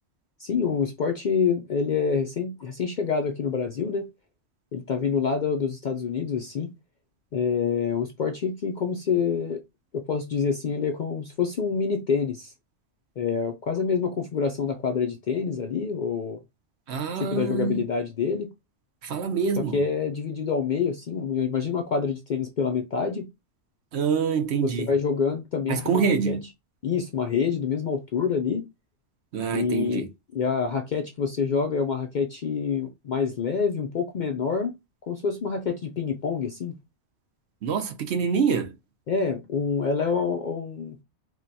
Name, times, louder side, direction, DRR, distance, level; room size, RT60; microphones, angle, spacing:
voice 1, 0.4-4.1 4.7-6.7 7.3-9.6 9.9-12.5 13.2-16.4 17.1-18.5 19.7-23.3 24.6-26.4 26.8-28.7 29.5-30.1 30.3-34.8 35.1-36.8 39.1-41.0, left 6 dB, 55° left, 0.5 m, -27 dB
voice 2, 16.9-17.8 19.0-19.8 23.9-24.9 25.7-26.4 29.3-30.1 37.6-38.7, right 6 dB, 65° right, 0.9 m, -26 dB
4.7 x 2.2 x 2.7 m
omnidirectional pair, 1.3 m